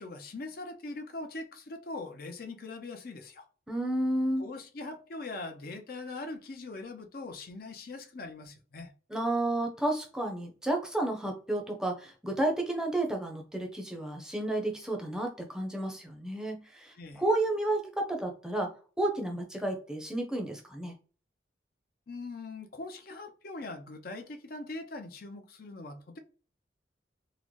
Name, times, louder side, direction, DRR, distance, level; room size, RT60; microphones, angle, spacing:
voice 1, 0.0-3.5 4.4-8.9 17.0-17.2 22.1-26.2, left 2 dB, 55° left, 0.6 m, -41 dB
voice 2, 3.7-4.4 9.1-18.7 19.0-21.0, right 1 dB, 5° right, 0.6 m, -31 dB
3.7 x 2.1 x 3.1 m
head